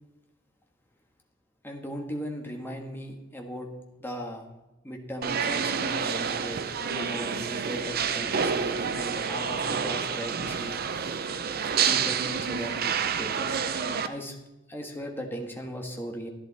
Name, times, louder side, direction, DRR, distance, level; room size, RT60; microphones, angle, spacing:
voice 1, 1.6-3.7 4.0-4.5 4.8-6.6 6.9-10.8 11.8-12.7 13.2-13.6 14.1-14.4 14.7-16.3, equal, 10° left, 2 dB, 1.4 m, -37 dB
sound 1, 5.2-14.1, right 6 dB, 50° right, 0.6 m, -28 dB
11.0 x 11.0 x 4.1 m, 1.0 s
head